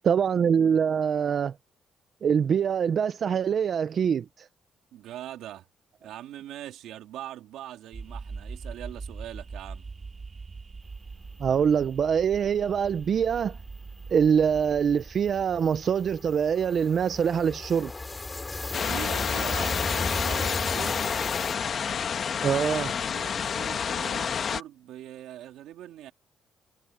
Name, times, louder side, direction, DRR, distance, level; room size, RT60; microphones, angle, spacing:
voice 1, 0.0-1.5 2.2-4.5 11.4-13.6 14.1-17.9 22.4-22.9, right 7 dB, 55° right, 0.8 m, -24 dB
voice 2, 4.9-5.7 6.0-9.8 18.8-21.0 22.5-26.1, right 12 dB, 85° right, 2.8 m, -42 dB
sound 1, 7.9-17.2, right 4 dB, 35° right, 2.3 m, -42 dB
sound 2, 13.2-13.3 13.5-13.7 14.0-21.6, left 3 dB, 20° left, 3.8 m, -34 dB
sound 3, 18.7-24.6, left 7 dB, 55° left, 1.6 m, -29 dB
cardioid pair, 90°, 0 cm